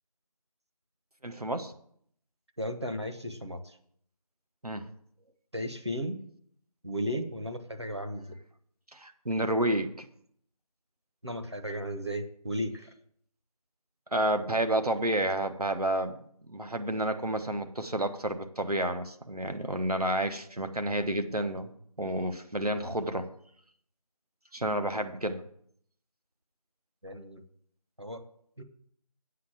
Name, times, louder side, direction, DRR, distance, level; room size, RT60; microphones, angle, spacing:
voice 1, 1.2-1.7 4.6-4.9 8.9-10.1 14.1-16.2 16.5-21.7 22.0-23.3 24.5-25.4, right 1 dB, 80° right, 7 dB, 1.2 m, -30 dB
voice 2, 2.6-3.8 5.5-6.2 6.8-8.3 11.2-12.9 27.0-27.4 28.0-28.2 28.6-28.7, equal, 45° right, 6 dB, 1.1 m, -35 dB
8.3 x 5.6 x 7.7 m, 0.66 s
figure-of-eight pair, 175°, 19 cm